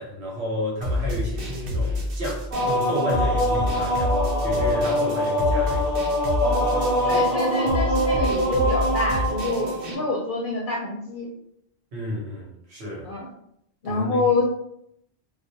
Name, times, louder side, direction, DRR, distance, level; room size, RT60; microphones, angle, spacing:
voice 1, 0.0-4.2 4.4-5.9 6.8-7.1 11.9-13.1 13.8-14.3, left 1 dB, 90° right, -2 dB, 1.1 m, -31 dB
sound 1, 0.8-10.0, left 1 dB, 65° right, 0.7 m, -29 dB
sound 2, 2.5-10.1, equal, 25° right, 0.5 m, -24 dB
voice 2, 7.0-11.3 13.0-13.3 13.8-14.4, left 3 dB, 60° left, -4 dB, 0.6 m, -26 dB
2.3 x 2.1 x 2.7 m, 0.73 s
omnidirectional pair, 1.1 m